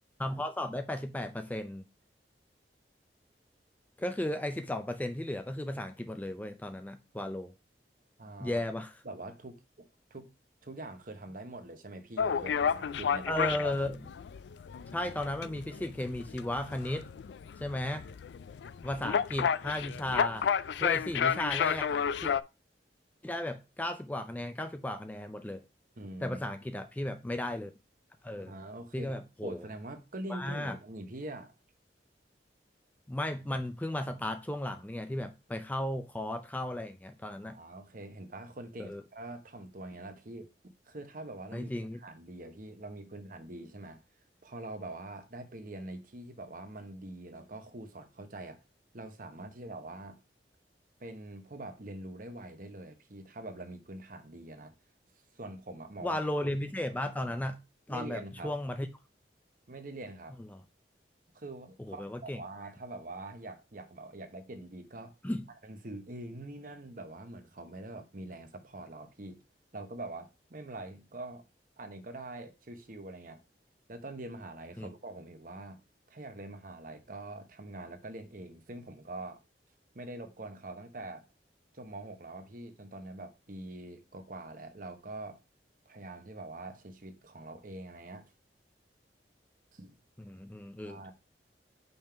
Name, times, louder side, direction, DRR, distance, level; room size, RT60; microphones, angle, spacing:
voice 1, 0.2-1.8 4.0-7.5 8.4-9.0 13.3-14.1 14.9-17.1 17.6-18.1 18.8-20.5 20.8-22.3 23.2-25.6 26.2-27.7 28.2-28.6 28.9-29.6 30.3-30.8 33.1-37.6 38.8-39.0 41.5-42.0 56.0-57.6 57.9-58.9 60.5-60.6 61.8-62.4 65.2-65.5 74.8-74.9 90.2-91.1, left 1 dB, 10° left, 0.4 m, -35 dB
voice 2, 8.2-8.6 9.0-10.3 10.6-13.5 26.0-26.4 28.4-29.1 29.4-31.5 37.4-41.7 42.0-44.0 44.4-48.6 48.9-50.2 51.0-54.7 55.3-56.2 57.9-58.6 59.7-60.4 61.3-65.2 65.6-69.4 69.7-71.4 71.8-73.4 73.9-75.8 76.1-79.4 79.9-81.2 81.7-85.4 85.9-88.3 89.7-90.0 90.8-91.1, right 2 dB, 50° right, 1.0 m, -44 dB
sound 1, 12.2-22.4, left 7 dB, 75° left, 0.4 m, -32 dB
5.4 x 3.6 x 5.7 m
head